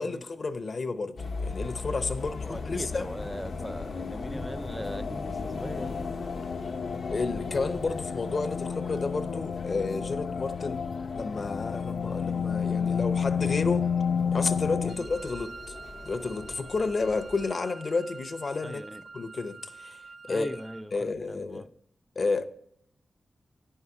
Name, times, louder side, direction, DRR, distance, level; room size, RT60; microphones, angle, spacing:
voice 1, 0.0-3.1 7.1-10.8 11.1-13.9 14.3-15.7 16.0-18.8 19.1-20.0 20.3-20.5 20.9-21.7 22.2-22.5, left 3 dB, 55° left, 0.7 m, -31 dB
sound 1, 1.2-17.5, left 3 dB, 90° left, 1.0 m, -39 dB
voice 2, 2.2-6.0 14.8-15.0 18.6-19.0 20.3-21.7, equal, ahead, 0.5 m, -40 dB
sound 2, 2.7-14.9, left 6 dB, 75° left, 0.3 m, -32 dB
Wind instrument woodwind instrument, 14.9-20.9, right 4 dB, 70° right, 0.5 m, -46 dB
10.5 x 5.6 x 4.7 m
wide cardioid pair, 75°, 0 cm